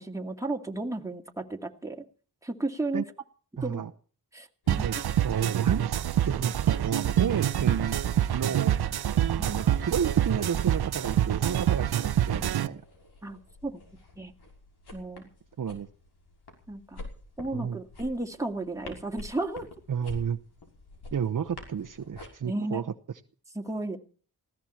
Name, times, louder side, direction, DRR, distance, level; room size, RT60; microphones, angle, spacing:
voice 1, 0.0-2.0 2.4-3.0 3.6-3.8 4.3-4.9 13.2-13.8 14.2-14.3 14.9-15.3 16.7-17.0 17.4-19.8 22.4-22.8 23.5-24.0, right 2 dB, 10° right, 2 dB, 2.3 m, -33 dB
voice 2, 3.6-3.9 4.8-5.8 6.2-8.0 8.3-8.8 9.4-12.8 15.6-15.9 17.5-17.8 19.9-20.4 21.1-22.8, right 7 dB, 55° right, 7 dB, 0.9 m, -31 dB
sound 1, 4.6-22.3, left 3 dB, 75° left, 5.8 m, -49 dB
sound 2, 4.7-12.7, right 11 dB, 75° right, 0.8 m, -26 dB
19.5 x 16.5 x 4.4 m, 0.43 s
wide cardioid pair, 105°, 39 cm